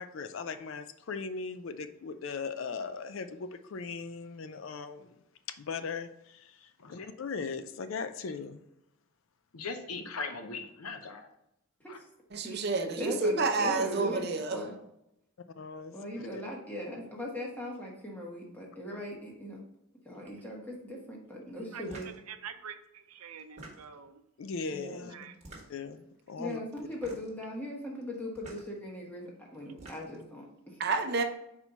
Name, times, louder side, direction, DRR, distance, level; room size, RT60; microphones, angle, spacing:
voice 1, 0.0-5.2 5.5-8.6 15.6-16.4 24.4-25.1 25.7-26.6, left 5 dB, 60° left, 11 dB, 0.4 m, -39 dB
voice 2, 9.5-11.3 11.9-12.0, left 4 dB, 85° left, 6 dB, 0.8 m, -39 dB
voice 3, 12.3-14.6 30.8-31.2, right 3 dB, 50° right, 7 dB, 0.6 m, -29 dB
voice 4, 13.0-14.7 15.9-19.6 20.0-22.1 24.7-25.2 26.4-30.8, left 1 dB, 10° left, -2 dB, 1.2 m, -39 dB
sound 1, 21.8-22.2 23.4-24.1 25.3-25.9 26.9-27.4 28.3-28.7 29.6-30.3, right 1 dB, 30° right, 1.4 m, -48 dB
voice 5, 22.3-24.2 25.1-25.3, right 8 dB, 85° right, 9 dB, 0.6 m, -45 dB
4.4 x 4.3 x 5.4 m, 0.83 s
head